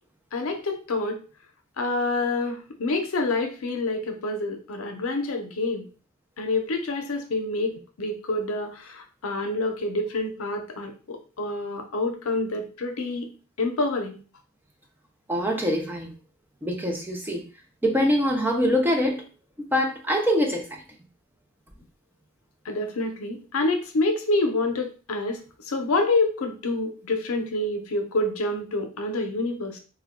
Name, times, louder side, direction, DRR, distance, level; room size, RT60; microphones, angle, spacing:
voice 1, 0.3-1.2 1.8-5.9 6.4-13.3 13.6-14.2 22.6-25.4 25.6-29.8, left 2 dB, 85° left, 4 dB, 0.6 m, -27 dB
voice 2, 15.3-16.1 16.6-17.4 17.8-19.2 19.7-20.8, equal, 10° right, 1 dB, 0.4 m, -24 dB
2.3 x 2.2 x 3.5 m, 0.36 s
head